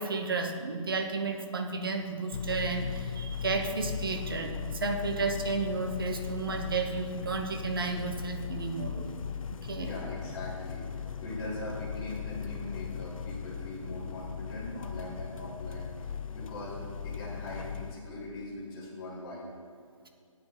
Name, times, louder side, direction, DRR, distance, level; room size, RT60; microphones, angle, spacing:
voice 1, 0.0-9.1 9.6-9.9, right 3 dB, 45° right, 5 dB, 1.0 m, -32 dB
sound 1, 2.3-17.9, left 7 dB, 90° left, 0.6 m, -38 dB
voice 2, 9.7-16.8 17.0-19.5, left 1 dB, 5° left, -9 dB, 0.5 m, -41 dB
9.2 x 8.0 x 5.6 m, 2.3 s
hypercardioid pair, 180°, 17 cm